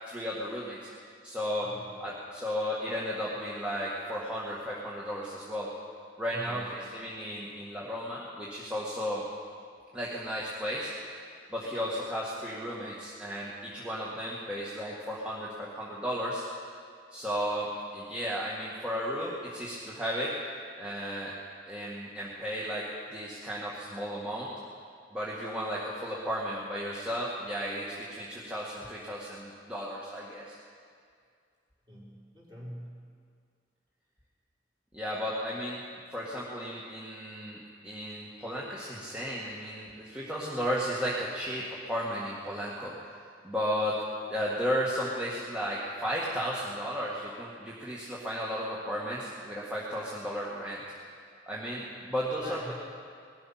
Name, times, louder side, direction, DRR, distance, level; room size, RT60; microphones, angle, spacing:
voice 1, 0.1-0.9 1.2-1.7 2.0-5.7 6.2-9.2 9.9-10.9 11.5-16.4 17.1-20.4 20.8-21.3 21.7-24.5 25.1-30.6 34.9-35.8 36.1-42.9 43.4-44.0 44.3-50.8 51.5-52.7, equal, 5° right, -7 dB, 1.8 m, -34 dB
voice 2, 6.3-6.7 31.9-33.1 52.3-52.7, equal, 25° right, -5 dB, 4.2 m, -43 dB
20.0 x 12.5 x 5.7 m, 2.2 s
head